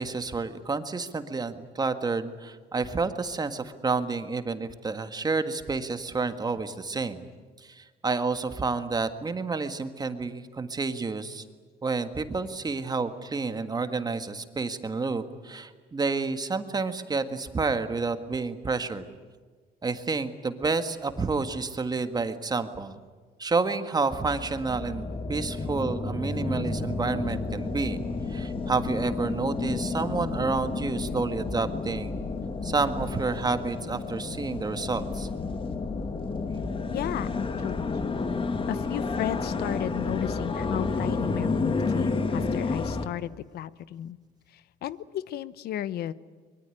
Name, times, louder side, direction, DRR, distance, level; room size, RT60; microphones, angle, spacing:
voice 1, 0.0-7.2 7.6-11.4 11.8-19.1 19.8-23.0 23.4-28.0 28.3-32.2 32.6-35.3, right 4 dB, 25° right, 8 dB, 1.8 m, -29 dB
sound 1, 24.1-43.1, left 3 dB, 30° left, 2.0 m, -31 dB
voice 2, 36.9-38.0 38.7-44.2 44.5-46.1, left 12 dB, 70° left, 17 dB, 1.0 m, -34 dB
24.0 x 22.5 x 10.0 m, 1.4 s
cardioid pair, 110°, 17 cm